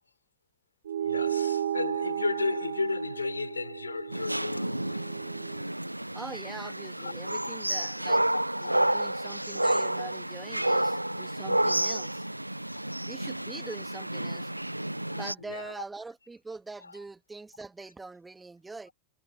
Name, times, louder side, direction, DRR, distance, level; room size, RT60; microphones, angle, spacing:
sound 1, 0.9-5.7, right 10 dB, 65° right, 0.4 m, -33 dB
voice 1, 1.0-5.2 7.0-7.1 7.4-7.6 8.3-9.1 10.8-11.0 12.7-13.0 15.1-15.7 16.8-17.0, left 4 dB, 80° left, 6.4 m, -35 dB
sound 2, 4.1-15.3, right 1 dB, 85° right, 1.2 m, -30 dB
voice 2, 6.1-8.2 8.6-12.3 13.1-14.5 15.1-18.9, right 3 dB, 10° right, 2.2 m, -43 dB
figure-of-eight pair, 90°, 0 cm